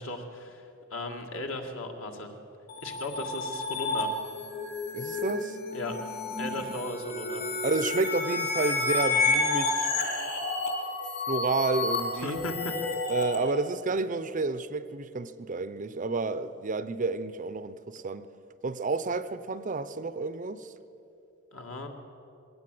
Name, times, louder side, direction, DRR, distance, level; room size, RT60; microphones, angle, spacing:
voice 1, 0.0-2.3 2.8-4.1 5.7-6.0 6.4-7.4 12.2-12.7 21.5-21.9, left 2 dB, 60° left, 3 dB, 2.0 m, -36 dB
sound 1, 2.7-13.4, left 3 dB, 45° left, 3.3 m, -30 dB
voice 2, 4.9-5.6 7.6-9.9 11.3-12.4 13.1-18.3 18.6-20.7, right 3 dB, 35° right, 13 dB, 0.6 m, -30 dB
21.0 x 17.5 x 7.7 m, 2.9 s
head